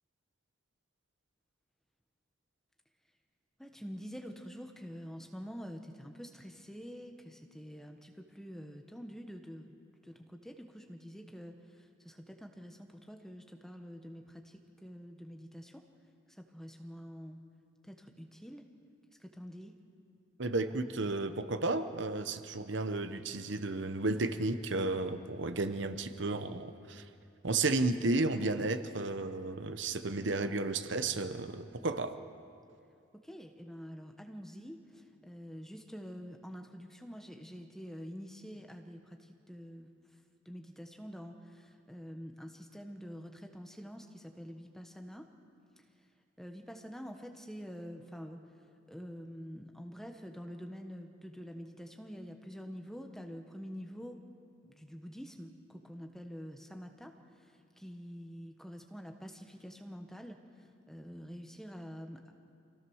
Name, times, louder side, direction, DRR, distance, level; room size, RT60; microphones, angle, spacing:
voice 1, 3.6-9.7 10.0-15.8 16.3-17.4 17.8-18.6 19.2-19.7 33.1-39.9 40.4-45.3 45.8-45.9 46.4-48.4 48.9-54.2 54.6-62.2, equal, ahead, 4 dB, 1.2 m, -47 dB
voice 2, 20.4-27.1 27.4-32.1, right 2 dB, 60° right, 9 dB, 0.9 m, -33 dB
26.0 x 16.0 x 6.4 m, 2.7 s
head